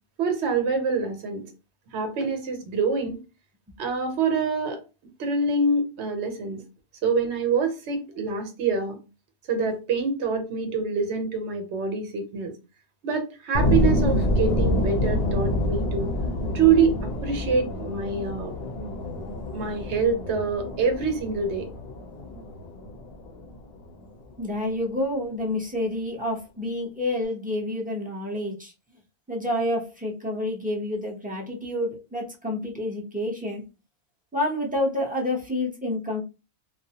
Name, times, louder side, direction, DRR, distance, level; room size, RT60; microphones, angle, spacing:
voice 1, 0.2-1.4 1.9-3.2 3.8-4.8 5.2-6.6 7.0-9.0 9.5-12.5 13.0-16.1 16.5-18.5 19.5-21.7, right 4 dB, 70° right, 1.0 m, -25 dB
sound 1, 13.5-24.3, left 1 dB, 65° left, 0.7 m, -27 dB
voice 2, 24.4-28.7 29.3-33.6 34.3-36.2, left 1 dB, 10° right, 0.5 m, -28 dB
2.4 x 2.0 x 2.7 m
omnidirectional pair, 1.2 m